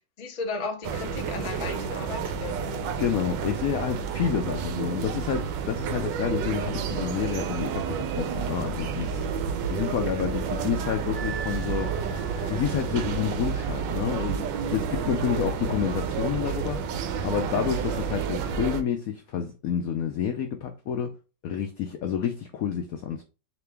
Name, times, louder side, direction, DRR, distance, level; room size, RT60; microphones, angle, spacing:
voice 1, 0.2-2.8, left 4 dB, 40° left, 0.6 m, -35 dB
sound 1, 0.8-18.8, right 6 dB, 75° right, 1.3 m, -30 dB
voice 2, 3.0-12.1 12.5-21.1 21.4-23.2, left 8 dB, 75° left, 0.8 m, -29 dB
Wind instrument woodwind instrument, 11.1-13.1, right 5 dB, 45° right, 1.7 m, -41 dB
4.0 x 3.0 x 3.3 m
omnidirectional pair, 2.0 m